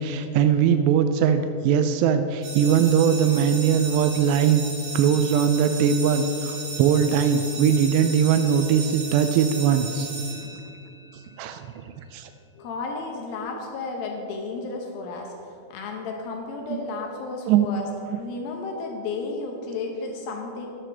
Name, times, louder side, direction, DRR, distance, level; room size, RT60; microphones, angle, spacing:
voice 1, 0.0-4.6 4.9-10.1 10.4-10.5 11.4-11.6 12.1-12.3 16.7-16.8 17.5-17.7, right 8 dB, 90° right, 8 dB, 2.4 m, -20 dB
sound 1, 2.4-11.1, right 3 dB, 45° right, 2.4 m, -35 dB
voice 2, 12.6-17.8 18.2-20.7, left 3 dB, 85° left, 1 dB, 2.1 m, -33 dB
12.0 x 11.0 x 3.4 m, 2.7 s
omnidirectional pair, 5.4 m